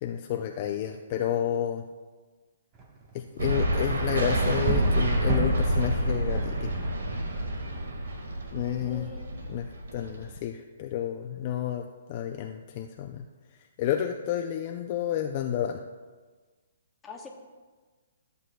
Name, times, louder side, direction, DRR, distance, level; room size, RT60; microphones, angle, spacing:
voice 1, 0.0-1.8 3.1-6.7 8.5-9.1 9.5-13.2 13.8-15.8, left 10 dB, 35° left, 4 dB, 0.4 m, -30 dB
sound 1, 2.7-7.6, right 3 dB, 25° right, 1.2 m, -33 dB
sound 2, 3.4-10.4, right 1 dB, 80° right, 1.7 m, -28 dB
voice 2, 8.8-9.5 17.0-17.3, left 3 dB, 10° left, 1 dB, 0.9 m, -44 dB
13.5 x 8.1 x 2.3 m, 1.4 s
hypercardioid pair, 155°, 0 cm